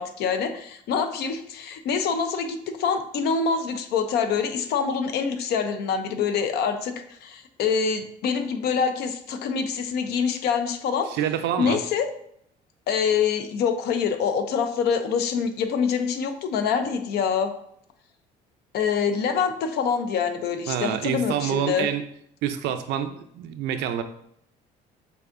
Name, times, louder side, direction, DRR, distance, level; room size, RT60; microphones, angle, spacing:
voice 1, 0.0-6.9 7.2-11.1 11.6-12.1 12.9-17.5 18.7-21.9, left 6 dB, 70° left, 8 dB, 0.6 m, -25 dB
voice 2, 11.1-11.8 20.7-22.0 22.4-24.0, right 9 dB, 85° right, 8 dB, 0.5 m, -27 dB
6.7 x 2.6 x 2.5 m, 0.70 s
cardioid pair, 110°, 17 cm